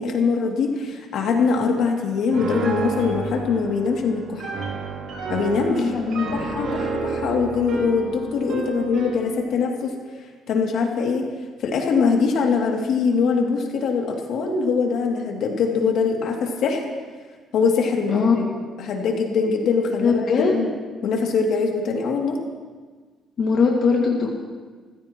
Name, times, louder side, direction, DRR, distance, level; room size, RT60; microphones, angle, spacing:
voice 1, 0.0-4.5 5.3-5.9 6.3-9.9 10.5-11.3 11.6-16.8 17.5-18.4 18.8-20.7 21.0-22.4, left 5 dB, 65° left, 0 dB, 2.6 m, -22 dB
Piano, 2.3-9.2, right 3 dB, 70° right, 4.5 m, -30 dB
voice 2, 5.8-6.6 18.1-18.3 20.0-20.6 23.4-24.3, left 5 dB, 50° left, -2 dB, 2.1 m, -20 dB
28.5 x 15.5 x 3.1 m, 1.4 s
cardioid pair, 145°, 0 cm